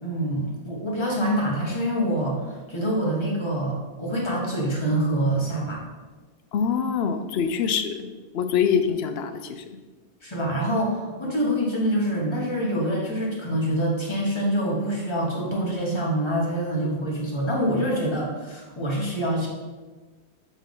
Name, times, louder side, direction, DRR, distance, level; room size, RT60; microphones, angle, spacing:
voice 1, 0.0-5.8 10.2-19.5, right 1 dB, 25° left, -3 dB, 1.3 m, -26 dB
voice 2, 6.5-8.1 8.3-9.6 16.8-16.9, left 7 dB, 70° left, 8 dB, 0.8 m, -24 dB
7.2 x 3.6 x 3.8 m, 1.3 s
omnidirectional pair, 1.2 m